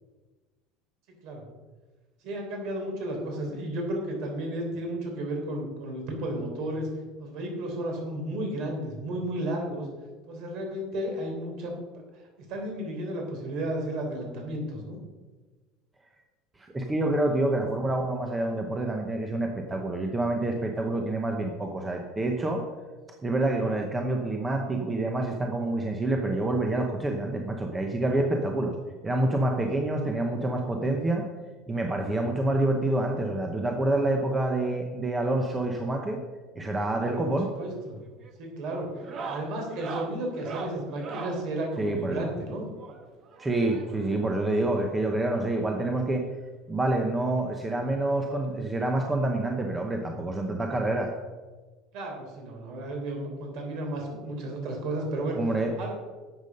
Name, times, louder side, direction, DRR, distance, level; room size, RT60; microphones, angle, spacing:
voice 1, 2.2-6.9 7.2-9.9 10.3-11.7 12.5-15.0 17.2-17.4 37.0-38.0 38.4-38.9 39.2-42.7 51.9-55.4 55.8-55.9, right 1 dB, 50° right, 1 dB, 3.7 m, -33 dB
voice 2, 16.6-22.6 23.2-28.7 29.0-31.2 31.7-36.2 36.6-37.5 41.8-42.3 43.4-46.2 46.7-51.1 55.3-55.7, right 2 dB, 10° right, 2 dB, 0.9 m, -27 dB
sound 1, 37.4-37.7 38.0-38.4 38.9-41.5 42.8-44.2 45.2-45.3 45.5-45.6 46.1-46.2 47.5-47.6 48.9-49.0, right 4 dB, 30° right, 1.3 m, -39 dB
12.0 x 8.1 x 5.3 m, 1.3 s
cardioid pair, 170°, 0 cm